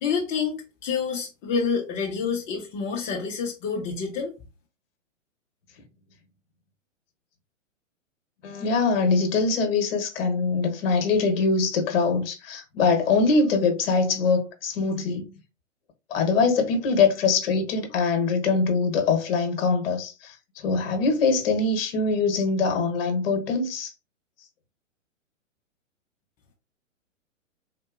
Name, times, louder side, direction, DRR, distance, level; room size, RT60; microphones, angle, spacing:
voice 1, 0.0-4.3, left 5 dB, 25° left, 0.7 m, -28 dB
voice 2, 8.4-15.3 16.1-23.9, left 4 dB, 50° left, 1.1 m, -23 dB
3.7 x 2.7 x 2.4 m
figure-of-eight pair, 115°, 38 cm